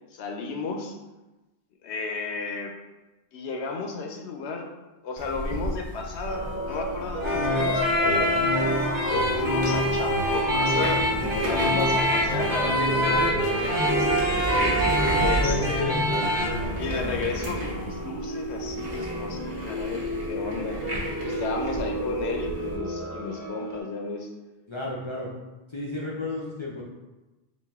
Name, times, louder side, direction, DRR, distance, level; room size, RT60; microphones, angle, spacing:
voice 1, 0.1-1.0 1.8-2.7 3.3-4.7 5.0-8.4 9.1-11.1 11.4-14.2 15.1-15.8 16.8-20.8 21.2-24.3, left 4 dB, 85° left, 2 dB, 0.9 m, -33 dB
sound 1, 5.2-22.8, right 1 dB, 40° right, 0.9 m, -34 dB
sound 2, 6.3-23.8, left 1 dB, 15° right, 0.6 m, -32 dB
sound 3, 7.2-16.6, equal, 90° right, 1.4 m, -25 dB
voice 2, 15.1-16.0 24.7-25.3 25.7-26.8, left 3 dB, 45° left, -5 dB, 0.4 m, -31 dB
4.1 x 2.5 x 3.4 m, 1.1 s
omnidirectional pair, 1.1 m